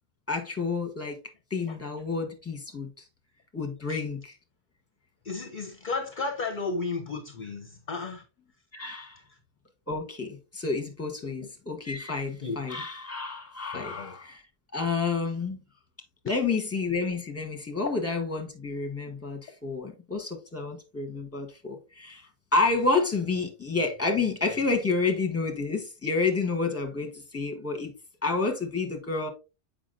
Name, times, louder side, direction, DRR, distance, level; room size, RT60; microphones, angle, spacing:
voice 1, 0.3-1.2 1.5-3.0 3.5-4.4 8.7-9.2 9.9-14.4 14.7-15.6 16.2-27.9 28.2-29.3, left 4 dB, 10° left, 1.2 m, -29 dB
voice 2, 5.2-8.2 11.2-11.3 12.4-12.6 13.7-14.2 17.9-18.0, left 4 dB, 45° left, 0.8 m, -33 dB
7.2 x 5.2 x 2.6 m
omnidirectional pair, 1.3 m